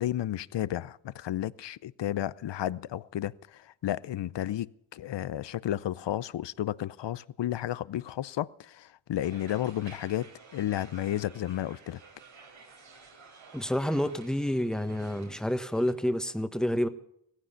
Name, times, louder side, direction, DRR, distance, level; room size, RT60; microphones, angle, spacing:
voice 1, 0.0-12.0, left 12 dB, 65° left, 0.7 m, -32 dB
sound 1, 9.2-15.9, right 4 dB, 85° right, 4.6 m, -53 dB
voice 2, 13.5-16.9, equal, ahead, 1.4 m, -29 dB
17.0 x 14.5 x 5.7 m
cardioid pair, 60°, 46 cm